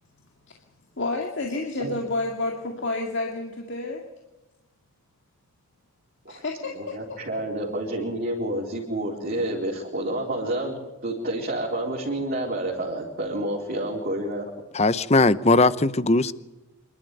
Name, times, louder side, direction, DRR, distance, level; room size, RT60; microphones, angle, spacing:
voice 1, 1.0-4.0 6.3-7.2, left 2 dB, 55° left, 2.3 m, -30 dB
voice 2, 6.7-10.8 11.0-14.5, right 1 dB, 45° right, 4.4 m, -29 dB
voice 3, 14.7-16.3, left 2 dB, 30° left, 0.8 m, -19 dB
27.0 x 12.5 x 9.3 m
head